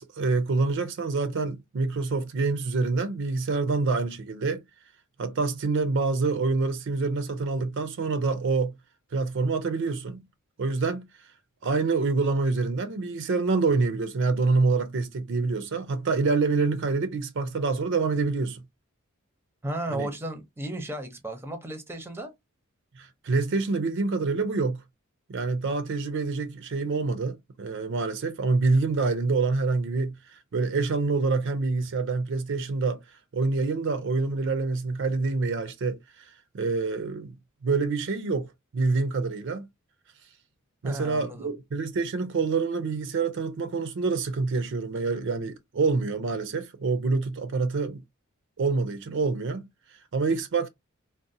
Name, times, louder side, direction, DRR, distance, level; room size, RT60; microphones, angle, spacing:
voice 1, 0.0-4.6 5.2-8.7 9.1-10.2 10.6-11.1 11.6-18.6 19.9-20.1 23.0-24.8 25.3-33.0 33.3-36.0 36.5-37.3 37.6-39.7 40.8-48.0 48.6-49.7 50.1-50.7, right 3 dB, 60° right, 0.5 m, -26 dB
voice 2, 19.6-22.3 40.8-41.5, right 1 dB, 10° right, 0.6 m, -34 dB
3.9 x 2.0 x 2.6 m
head